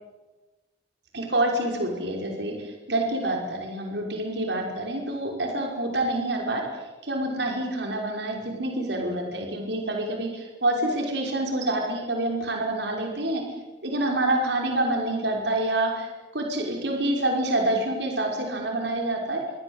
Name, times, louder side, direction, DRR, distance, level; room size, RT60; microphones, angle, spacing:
voice 1, 1.1-13.4 13.8-19.4, right 1 dB, 70° right, 1 dB, 5.7 m, -27 dB
29.0 x 25.0 x 8.2 m, 1.1 s
head